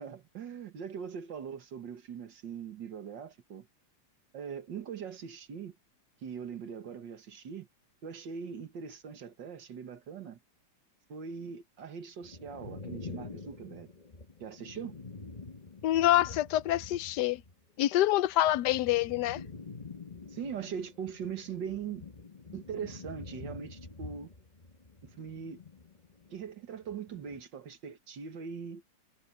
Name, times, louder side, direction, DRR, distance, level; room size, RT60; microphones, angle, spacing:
voice 1, 0.0-3.7 4.3-5.8 6.2-7.7 8.0-10.4 11.1-13.9 14.4-14.9 20.3-22.0 22.5-24.3 25.0-25.6 26.3-28.8, right 7 dB, 70° right, 2.3 m, -41 dB
sound 1, 12.2-17.5 17.8-26.4 26.7-27.4, left 3 dB, 25° left, 1.3 m, -47 dB
voice 2, 15.8-17.4 17.8-19.4, left 14 dB, 70° left, 1.1 m, -26 dB
omnidirectional pair, 2.0 m